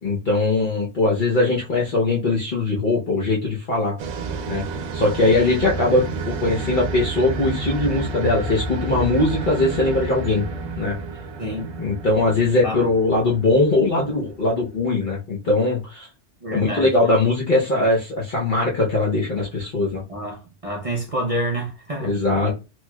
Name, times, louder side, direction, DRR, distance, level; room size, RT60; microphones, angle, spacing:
voice 1, 0.0-3.9 4.5-4.6 4.9-10.5 10.8-11.0 11.8-16.1 16.5-20.0 22.0-22.6, left 2 dB, 50° left, 0.8 m, -21 dB
sound 1, 4.0-14.8, right 4 dB, 70° right, 0.8 m, -30 dB
voice 2, 11.4-11.7 12.6-12.9 16.4-17.2 20.1-22.1, right 1 dB, 40° right, 0.6 m, -28 dB
3.0 x 2.9 x 2.2 m
omnidirectional pair, 1.2 m